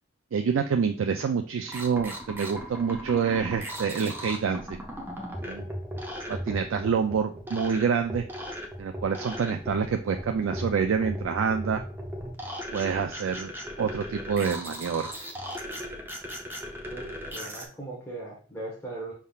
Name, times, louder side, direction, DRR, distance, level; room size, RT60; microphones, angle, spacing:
voice 1, 0.3-4.8 5.4-5.7 6.3-8.2 8.8-11.8 12.7-13.5 13.8-15.1, right 6 dB, 85° right, 5 dB, 0.4 m, -27 dB
sound 1, 1.7-17.6, equal, 10° right, 0.5 m, -37 dB
voice 2, 16.9-19.1, right 2 dB, 15° left, -5 dB, 1.1 m, -39 dB
5.5 x 3.5 x 2.3 m, 0.40 s
head